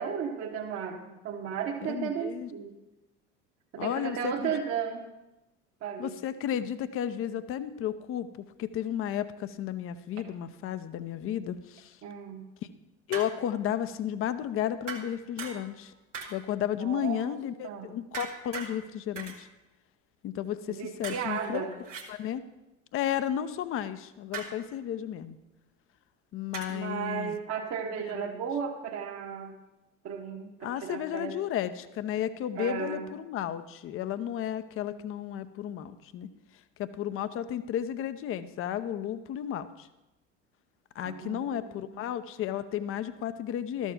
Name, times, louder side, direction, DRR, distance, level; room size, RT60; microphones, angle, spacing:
voice 1, 0.0-2.7 3.7-5.1 5.8-6.1 12.0-12.5 16.8-17.4 17.6-17.9 20.7-21.7 26.7-29.5 30.0-31.3 32.6-33.1 41.0-42.0, right 7 dB, 45° right, 0 dB, 1.3 m, -35 dB
voice 2, 1.9-2.5 3.8-4.5 6.0-8.3 8.6-12.0 13.1-15.9 16.3-19.5 20.2-21.7 22.1-22.4 22.9-25.4 26.3-27.4 28.1-28.3 30.6-36.3 36.8-39.9 40.9-43.9, left 10 dB, 35° left, 12 dB, 0.7 m, -33 dB
sound 1, 13.1-13.7 14.9-15.8 16.1-16.6 18.1-18.7 19.2-19.4 21.0-22.1 24.3-24.7 26.5-26.9, right 5 dB, 80° right, 1.6 m, -40 dB
13.0 x 7.1 x 5.9 m, 0.98 s
figure-of-eight pair, 65°, 36 cm